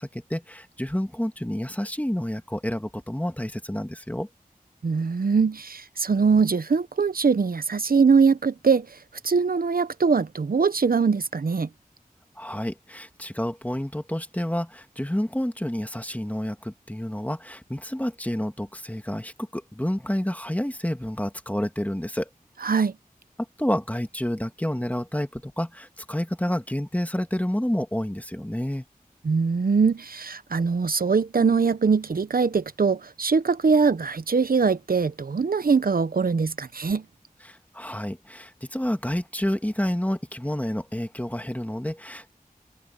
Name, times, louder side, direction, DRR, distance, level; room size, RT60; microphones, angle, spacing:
voice 1, 0.0-4.3 12.4-22.3 23.6-28.8 37.4-42.3, equal, 10° left, 1.9 m, -29 dB
voice 2, 4.8-9.0 9.2-11.7 22.6-22.9 29.2-37.0, right 5 dB, 75° right, 0.8 m, -22 dB
wide cardioid pair, 45°, 15 cm